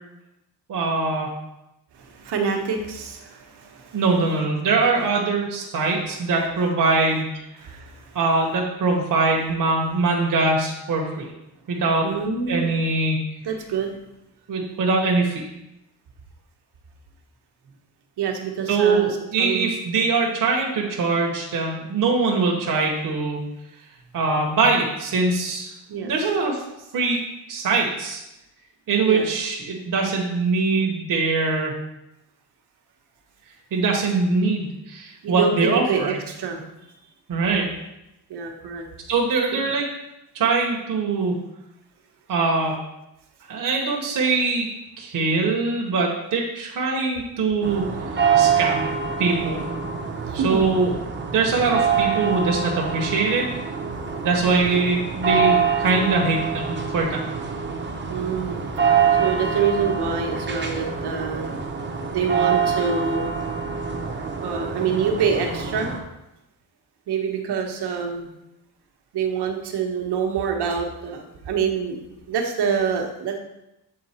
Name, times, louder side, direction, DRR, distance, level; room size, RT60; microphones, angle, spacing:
voice 1, 0.7-1.3 3.9-7.4 8.1-11.3 11.7-12.1 12.5-13.2 14.5-15.5 18.7-23.4 24.1-25.7 26.0-26.6 26.9-27.2 27.5-28.2 28.9-31.7 33.7-36.2 37.3-37.7 39.1-39.9 40.3-41.3 42.3-42.7 43.5-44.7 45.0-47.9 48.3-48.9 49.2-49.6 50.3-51.0 51.3-53.5 54.2-57.2, right 3 dB, 55° right, -1 dB, 1.1 m, -22 dB
voice 2, 1.9-4.0 7.6-8.2 12.0-12.7 13.4-14.0 18.2-19.8 25.9-26.1 29.0-29.3 35.2-36.6 38.3-38.9 50.3-50.6 58.1-58.6 59.0-61.4 62.1-63.4 64.4-65.9 67.1-68.3 69.1-72.0 72.3-73.4, right 6 dB, 85° right, 3 dB, 1.2 m, -26 dB
sound 1, 47.6-66.0, right 6 dB, 30° right, 0.8 m, -25 dB
7.7 x 3.8 x 4.3 m, 0.91 s
cardioid pair, 135°, 39 cm